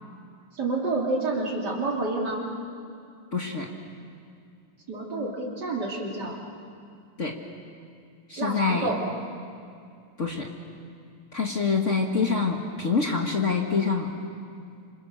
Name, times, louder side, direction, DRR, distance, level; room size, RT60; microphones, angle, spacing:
voice 1, 0.5-2.5 4.9-6.4 8.4-9.0, right 2 dB, 50° right, -1 dB, 3.6 m, -28 dB
voice 2, 3.3-3.7 7.2-7.4 8.3-8.9 10.2-10.5 11.3-14.1, left 5 dB, 40° left, 1 dB, 1.7 m, -26 dB
28.0 x 26.5 x 6.6 m, 2.4 s
omnidirectional pair, 2.3 m